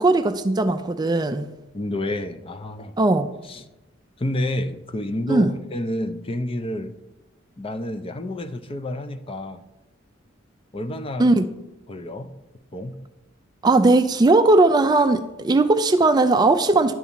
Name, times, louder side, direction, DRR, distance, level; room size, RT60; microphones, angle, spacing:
voice 1, 0.0-1.5 3.0-3.3 5.3-5.5 11.2-11.5 13.6-16.9, right 2 dB, 20° right, 0.3 m, -18 dB
voice 2, 1.7-2.9 3.4-3.7 4.2-6.9 7.6-9.6 10.7-11.3 11.9-12.3 12.7-13.0, left 1 dB, 30° left, 0.6 m, -29 dB
11.0 x 4.1 x 7.3 m
head